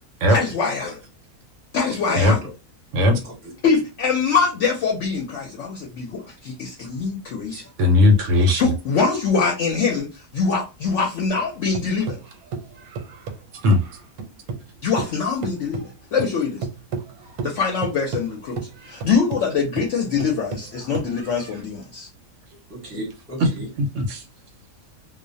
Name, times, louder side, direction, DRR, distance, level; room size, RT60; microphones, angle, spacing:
voice 1, 0.3-0.9 1.7-2.4 3.6-7.6 8.6-12.2 14.8-16.7 17.4-18.6 18.8-22.1, left 5 dB, 65° left, 0.8 m, -23 dB
voice 2, 1.9-2.5 3.2-3.5 7.6-7.7 22.7-23.7, equal, 15° right, 0.7 m, -36 dB
voice 3, 7.8-8.6 13.6-13.8 23.8-24.2, left 2 dB, 65° right, 0.8 m, -17 dB
sound 1, 11.3-14.7 15.0-21.6, right 4 dB, 85° right, 1.1 m, -33 dB
2.4 x 2.1 x 2.5 m
omnidirectional pair, 1.5 m